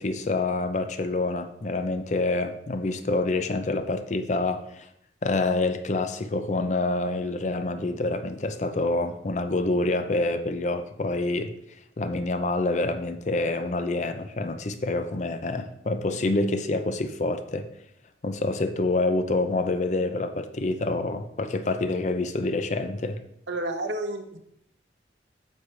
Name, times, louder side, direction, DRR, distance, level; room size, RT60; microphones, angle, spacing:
voice 1, 0.0-4.9 5.2-11.5 12.0-17.6 18.2-23.2, left 2 dB, 40° left, 0.5 m, -27 dB
voice 2, 23.5-24.4, right 1 dB, 85° right, 0.9 m, -30 dB
9.5 x 6.6 x 3.3 m
head